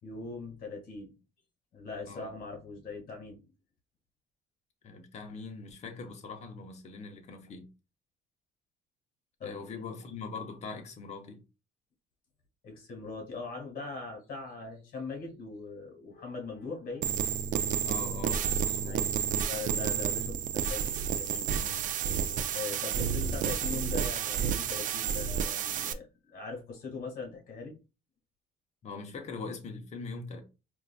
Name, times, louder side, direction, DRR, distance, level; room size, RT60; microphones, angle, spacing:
voice 1, 0.0-1.1 1.7-3.4 9.4-9.6 12.6-17.1 18.9-19.1 19.5-21.5 22.5-27.7, left 4 dB, 60° left, 1.8 m, -41 dB
voice 2, 4.8-7.7 9.4-11.4 17.8-19.2 21.6-21.9 28.8-30.4, left 4 dB, 40° left, 0.9 m, -42 dB
sound 1, 17.0-25.9, right 8 dB, 50° right, 0.4 m, -30 dB
4.7 x 2.6 x 2.2 m
cardioid pair, 110°, 17 cm